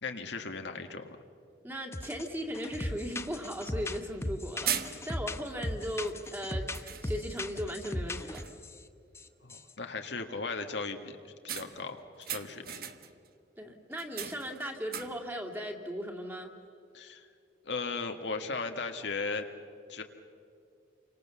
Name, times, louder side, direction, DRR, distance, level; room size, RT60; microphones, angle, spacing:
voice 1, 0.0-1.2 9.4-12.8 16.9-17.3 17.6-19.5 19.9-20.0, left 4 dB, 70° left, 5 dB, 1.8 m, -37 dB
voice 2, 1.6-8.4 13.6-16.5, equal, 10° right, 2 dB, 2.4 m, -37 dB
sound 1, 1.9-2.3 2.5-8.8 9.2-9.3 9.5-9.7, left 1 dB, 15° left, 0.8 m, -37 dB
sound 2, 3.3-3.4 4.1-4.3 4.7-5.4 6.1-6.3 6.7-7.5 7.9-8.1 8.3-8.8 11.5-13.3 13.9-15.4, right 9 dB, 50° right, 1.3 m, -39 dB
29.5 x 25.0 x 7.1 m, 2.4 s
head